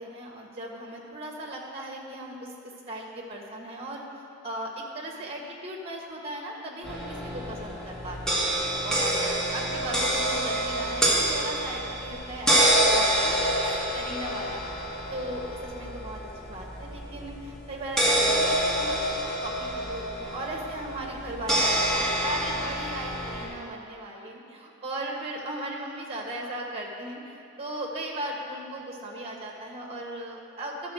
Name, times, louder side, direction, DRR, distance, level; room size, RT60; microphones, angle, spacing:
voice 1, 0.0-4.0 4.4-8.4 8.8-14.6 15.1-30.9, right 1 dB, 30° right, -2 dB, 1.4 m, -37 dB
sound 1, 6.8-23.5, right 1 dB, 5° left, 1.6 m, -27 dB
12.5 x 4.3 x 6.3 m, 2.6 s
head